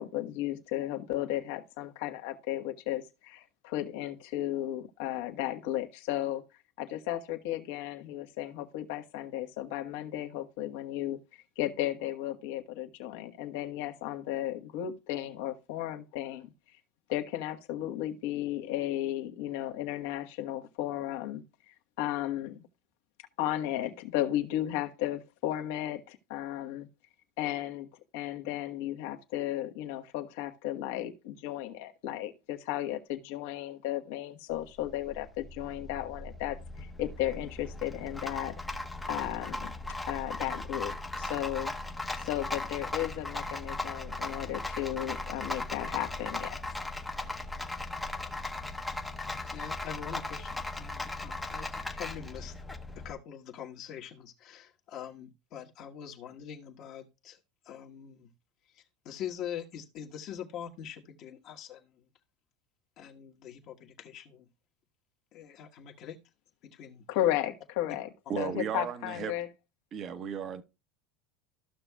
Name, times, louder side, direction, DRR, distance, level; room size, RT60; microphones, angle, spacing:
voice 1, 0.0-6.4 6.8-16.5 17.1-21.4 22.0-22.6 23.4-26.9 27.4-27.9 28.1-38.5 39.1-39.7 40.1-41.7 42.2-46.6 67.1-68.1 68.4-69.5, left 13 dB, 70° left, 1.3 m, -34 dB
Rattle, 34.5-53.1, left 2 dB, 5° left, 0.8 m, -38 dB
voice 2, 49.4-52.5 52.9-57.4 57.6-58.3 58.7-62.1 63.0-64.5 65.3-66.2 66.6-67.1, left 9 dB, 50° left, 1.3 m, -44 dB
voice 3, 68.3-69.3 69.9-70.6, right 7 dB, 35° right, 1.0 m, -35 dB
14.0 x 6.1 x 2.3 m
supercardioid pair, 130°, 0 cm